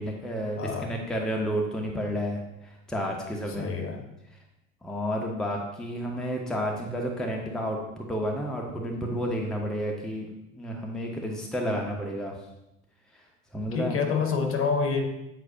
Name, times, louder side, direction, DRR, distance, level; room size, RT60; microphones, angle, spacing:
voice 1, 0.0-3.7 4.3-4.4 4.8-10.3 10.6-12.3 13.1-13.2 13.5-14.0, equal, ahead, 0 dB, 0.9 m, -31 dB
voice 2, 0.6-1.0 3.6-4.0 13.7-15.0, left 5 dB, 35° left, 3 dB, 1.2 m, -27 dB
8.2 x 4.7 x 2.7 m, 0.89 s
figure-of-eight pair, 65°, 40 cm